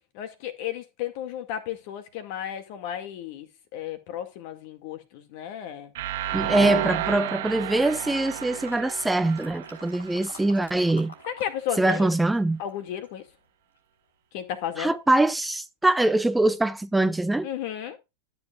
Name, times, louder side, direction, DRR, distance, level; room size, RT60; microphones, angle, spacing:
voice 1, 0.1-5.9 11.3-12.1 12.6-13.3 14.3-15.0 17.4-18.0, left 10 dB, 50° left, 2.1 m, -33 dB
sound 1, 5.9-10.8, right 12 dB, 60° right, 1.2 m, -32 dB
voice 2, 6.3-11.1 11.8-12.6 14.8-17.5, right 2 dB, 5° right, 0.6 m, -23 dB
sound 2, 8.2-11.5 11.8-13.2 13.7-13.8, left 3 dB, 80° left, 3.6 m, -47 dB
13.0 x 7.4 x 2.4 m
figure-of-eight pair, 95°, 0 cm